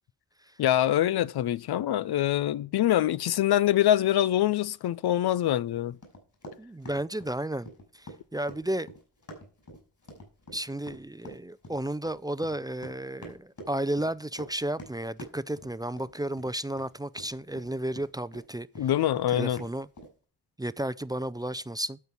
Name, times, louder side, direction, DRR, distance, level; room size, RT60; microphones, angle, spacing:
voice 1, 0.6-6.0 18.8-19.6, left 12 dB, 80° left, 0.5 m, -24 dB
Run, 6.0-18.4 18.7-20.1, equal, 50° left, 5.1 m, -46 dB
voice 2, 6.6-8.9 10.5-18.9 19.3-19.9 20.6-22.0, right 1 dB, 10° right, 0.4 m, -33 dB
12.0 x 4.5 x 6.9 m
cardioid pair, 65°, 37 cm